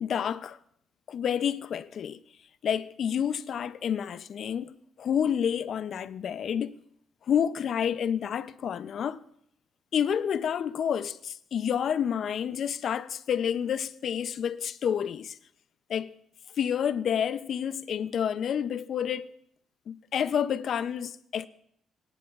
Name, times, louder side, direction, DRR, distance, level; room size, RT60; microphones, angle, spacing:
voice 1, 0.0-0.6 1.1-2.2 2.6-6.8 7.3-9.2 9.9-15.4 15.9-16.1 16.6-19.3 19.9-21.5, left 8 dB, 45° left, 0.4 m, -29 dB
21.0 x 10.0 x 2.3 m
cardioid pair, 170°, 0 cm